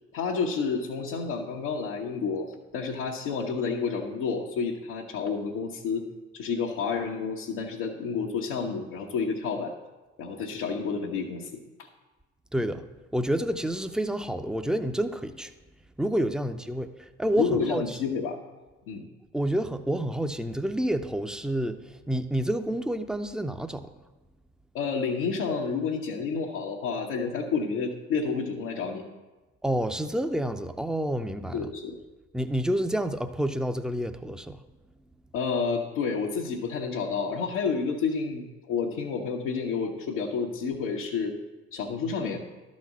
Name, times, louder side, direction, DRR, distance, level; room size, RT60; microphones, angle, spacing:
voice 1, 0.1-6.1 6.3-9.7 10.2-11.6 17.4-18.4 18.9-19.0 24.7-29.0 31.5-32.0 35.3-41.4 41.7-42.4, left 5 dB, 80° left, -4 dB, 1.0 m, -30 dB
voice 2, 12.5-12.8 13.1-15.5 16.0-18.0 19.3-23.8 29.6-31.7 32.3-34.6, right 1 dB, ahead, 9 dB, 0.6 m, -29 dB
12.0 x 4.2 x 6.1 m, 1.2 s
hypercardioid pair, 55°, 33 cm